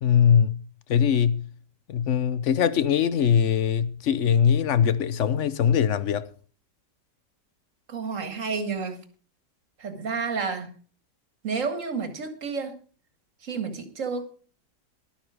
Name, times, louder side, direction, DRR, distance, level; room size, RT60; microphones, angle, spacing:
voice 1, 0.0-0.6 0.9-1.5 1.9-6.3, left 8 dB, 55° left, 0.9 m, -21 dB
voice 2, 7.9-9.0 9.8-10.7 11.4-12.7 13.4-14.3, right 5 dB, 50° right, 2.1 m, -30 dB
12.5 x 12.0 x 4.9 m
omnidirectional pair, 1.8 m